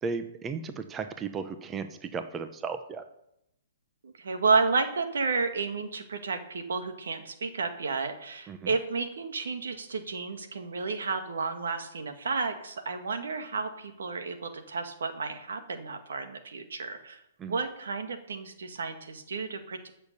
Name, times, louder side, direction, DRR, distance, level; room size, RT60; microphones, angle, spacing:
voice 1, 0.0-3.0 8.5-8.7 17.4-17.6, right 5 dB, 15° right, 9 dB, 0.8 m, -35 dB
voice 2, 4.0-17.2 17.5-19.9, right 4 dB, 80° right, 6 dB, 2.0 m, -31 dB
13.5 x 6.7 x 6.9 m, 0.80 s
hypercardioid pair, 140°, 0 cm